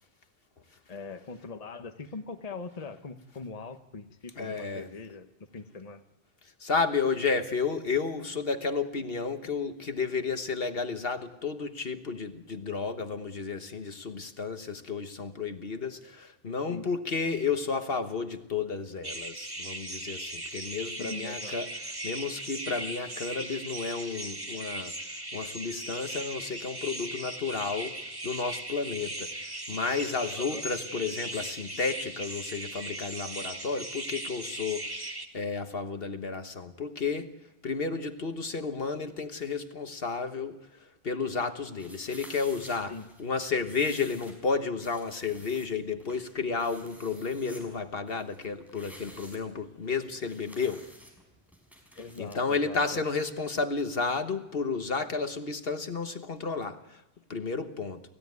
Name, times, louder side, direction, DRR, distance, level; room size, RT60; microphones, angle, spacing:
voice 1, 0.9-5.3 5.5-6.0 16.7-16.9 21.0-21.6 30.3-30.6 42.9-43.1 52.0-53.0, left 4 dB, 35° left, 7 dB, 1.2 m, -41 dB
voice 2, 4.4-4.9 6.6-21.7 22.0-24.9 25.3-28.0 28.2-29.3 29.7-34.9 35.3-37.3 37.6-40.6 41.0-42.9 43.2-50.8 52.2-57.0 57.3-58.0, left 4 dB, 60° left, 8 dB, 1.4 m, -32 dB
sound 1, 19.0-35.3, right 1 dB, 20° right, 1.8 m, -38 dB
sound 2, 41.8-52.4, equal, ahead, 5.8 m, -52 dB
29.0 x 16.0 x 9.5 m, 0.96 s
omnidirectional pair, 1.1 m